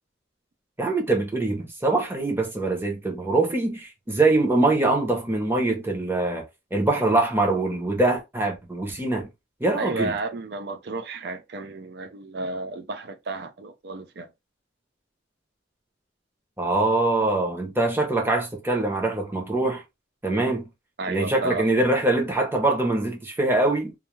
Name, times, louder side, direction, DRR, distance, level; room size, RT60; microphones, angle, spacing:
voice 1, 0.8-6.4 6.7-9.3 9.6-10.1 16.6-19.8 20.2-20.6 21.1-24.0, right 2 dB, 10° right, 0.7 m, -23 dB
voice 2, 9.8-14.3 21.0-21.7, right 2 dB, 60° right, 0.4 m, -32 dB
2.3 x 2.2 x 3.0 m
head